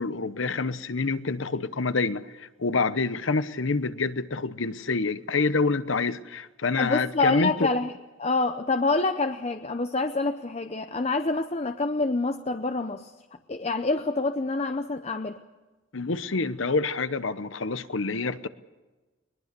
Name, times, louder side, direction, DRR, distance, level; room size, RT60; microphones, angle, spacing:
voice 1, 0.0-7.7 15.9-18.5, left 4 dB, 80° left, 14 dB, 0.9 m, -27 dB
voice 2, 6.8-7.9 8.2-13.1 13.5-15.4, left 3 dB, 30° left, 9 dB, 0.7 m, -27 dB
21.5 x 21.5 x 6.8 m, 1.2 s
head